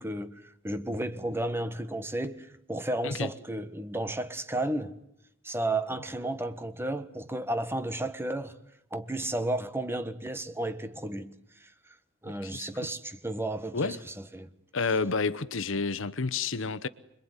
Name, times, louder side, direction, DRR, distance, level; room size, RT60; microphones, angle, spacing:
voice 1, 0.0-4.9 5.4-8.6 8.9-12.0 12.2-14.5, right 1 dB, 10° right, 1.4 m, -33 dB
voice 2, 14.7-16.9, left 4 dB, 70° left, 1.0 m, -30 dB
26.5 x 22.0 x 9.8 m
head